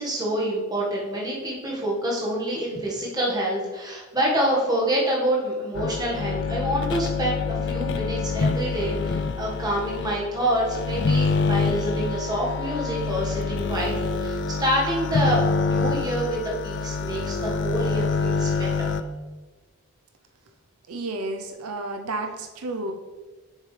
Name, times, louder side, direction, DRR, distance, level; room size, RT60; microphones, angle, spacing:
voice 1, 0.0-16.4 16.6-18.9, right 1 dB, 15° right, -4 dB, 1.6 m, -27 dB
sound 1, 5.7-19.0, left 4 dB, 50° left, 0.4 m, -26 dB
voice 2, 20.9-22.9, right 2 dB, 85° right, 5 dB, 0.6 m, -31 dB
7.4 x 6.4 x 3.3 m, 1.3 s
head